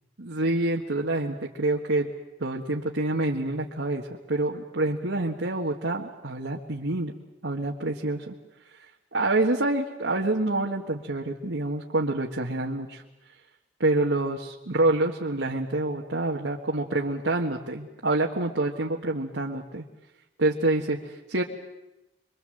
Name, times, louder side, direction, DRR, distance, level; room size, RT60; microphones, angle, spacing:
voice 1, 0.2-2.1 2.4-7.1 7.4-8.3 9.1-13.0 13.8-19.8 20.4-21.4, right 2 dB, 85° right, 0 dB, 1.6 m, -27 dB
27.5 x 23.0 x 7.8 m, 0.99 s
head